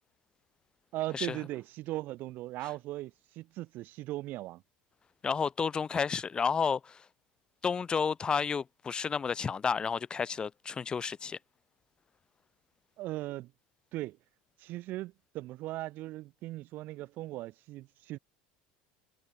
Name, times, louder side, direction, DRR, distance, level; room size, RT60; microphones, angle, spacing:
voice 1, 0.9-4.6 13.0-13.5 13.9-14.2 14.6-18.2, right 17 dB, 55° right, 6.4 m, -38 dB
voice 2, 5.2-7.0 7.6-11.4, left 6 dB, 25° left, 1.4 m, -31 dB
supercardioid pair, 120°, 4 cm